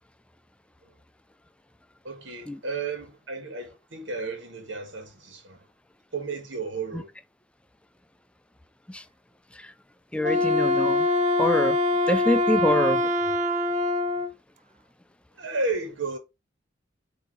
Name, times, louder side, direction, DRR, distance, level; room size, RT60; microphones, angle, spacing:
voice 1, 2.0-5.6 6.1-7.1 13.0-13.1 15.4-16.2, right 3 dB, 70° right, 1.7 m, -33 dB
voice 2, 10.1-11.1 11.4-11.8 12.1-13.0, left 1 dB, 5° left, 0.5 m, -25 dB
Wind instrument woodwind instrument, 10.2-14.3, left 2 dB, 40° right, 0.6 m, -23 dB
8.3 x 3.0 x 4.6 m
head